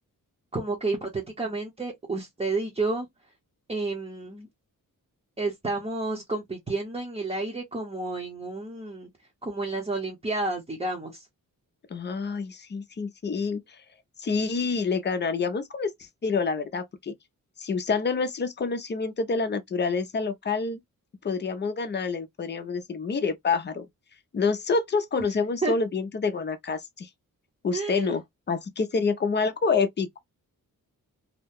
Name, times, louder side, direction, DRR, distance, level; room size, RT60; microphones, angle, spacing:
voice 1, 0.5-3.1 3.7-4.5 5.4-9.1 9.4-11.3 25.2-25.3 25.6-25.7 27.7-28.2, right 3 dB, 20° right, 0.8 m, -30 dB
voice 2, 11.9-13.6 14.2-17.1 17.6-20.8 21.2-23.9 24.3-27.1 27.6-28.2 28.5-30.2, left 4 dB, 30° left, 0.5 m, -27 dB
2.8 x 2.1 x 3.4 m
wide cardioid pair, 170°, 34 cm